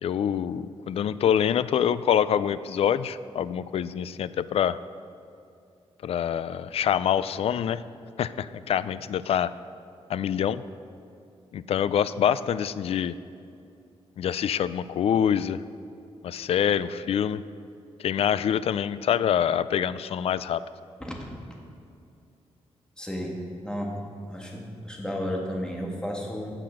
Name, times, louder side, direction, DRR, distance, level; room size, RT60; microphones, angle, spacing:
voice 1, 0.0-4.8 6.0-7.8 8.2-9.5 10.1-10.6 11.5-13.1 14.2-15.6 16.2-17.4 18.0-20.6, left 9 dB, 65° left, 15 dB, 0.4 m, -25 dB
voice 2, 21.0-21.6 23.0-24.0 24.3-26.5, equal, 5° left, -1 dB, 1.7 m, -33 dB
15.5 x 6.0 x 6.3 m, 2.6 s
wide cardioid pair, 170°, 11 cm